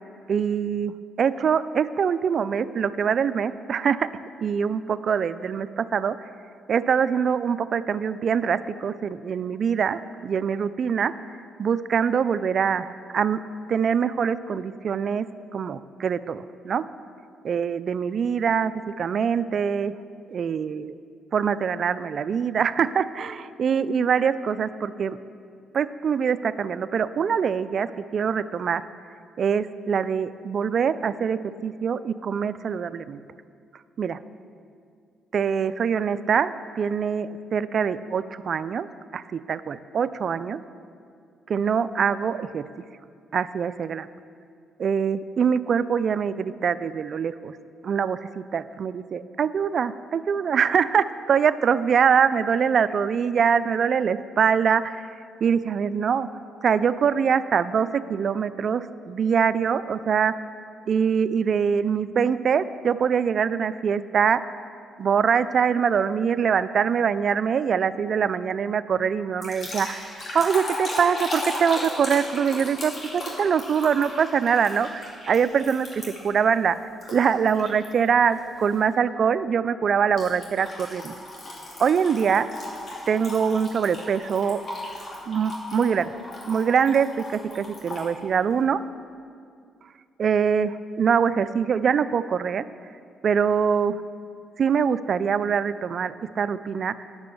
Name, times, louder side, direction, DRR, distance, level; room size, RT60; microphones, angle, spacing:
voice 1, 0.3-4.1 4.4-6.3 6.7-11.1 11.6-13.4 13.7-15.3 15.5-16.8 17.4-19.9 20.3-20.9 21.3-25.2 25.7-28.8 29.4-33.2 34.0-34.2 35.3-38.9 39.1-40.6 41.5-42.7 43.3-44.1 44.8-47.6 47.8-55.0 55.4-56.3 56.6-60.3 60.9-64.4 65.0-76.8 77.1-81.1 81.8-82.5 83.1-84.6 85.3-86.1 86.5-88.8 90.2-92.6 93.2-94.0 94.6-96.9, right 7 dB, 55° right, 14 dB, 0.3 m, -24 dB
sound 1, 69.4-76.4 77.0-77.9 78.3-78.6 80.2-88.1, left 1 dB, 50° left, 2.6 m, -36 dB
9.6 x 6.8 x 6.7 m, 2.4 s
cardioid pair, 90°, 0 cm